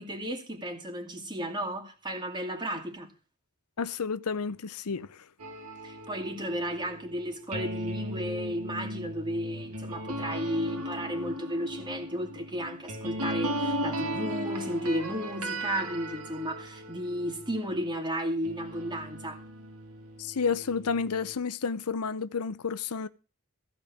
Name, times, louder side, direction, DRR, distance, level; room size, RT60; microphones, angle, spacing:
voice 1, 0.0-3.1 5.8-19.4, equal, 20° right, 2.4 m, -33 dB
voice 2, 3.8-5.2 20.2-23.1, left 5 dB, 90° left, 0.7 m, -31 dB
sound 1, 5.4-17.9 18.4-21.3, equal, 90° right, 2.3 m, -37 dB
15.5 x 5.2 x 8.6 m
head